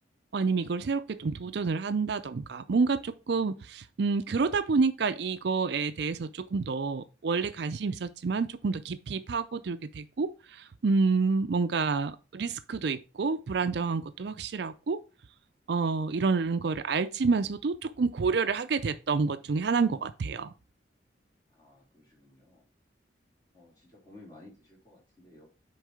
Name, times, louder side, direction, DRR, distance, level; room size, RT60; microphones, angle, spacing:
voice 1, 0.3-15.0 15.7-20.5, right 4 dB, 60° right, 0.4 m, -28 dB
voice 2, 21.5-22.7 23.5-25.5, left 2 dB, 20° left, 3.0 m, -55 dB
6.5 x 4.6 x 4.9 m
head